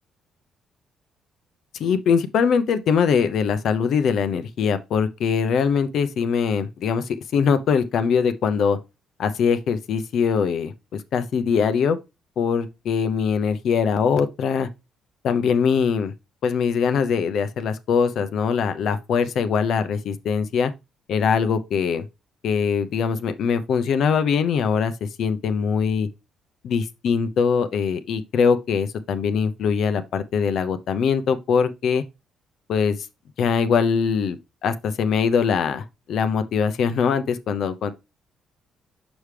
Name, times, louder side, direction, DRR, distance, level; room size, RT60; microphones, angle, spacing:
voice 1, 1.8-8.8 9.2-12.0 12.4-14.7 15.2-16.1 16.4-20.7 21.1-22.0 22.4-26.1 26.6-32.0 32.7-33.0 33.4-37.9, left 6 dB, 65° left, 0.7 m, -22 dB
6.2 x 4.9 x 3.3 m
cardioid pair, 110°, 0 cm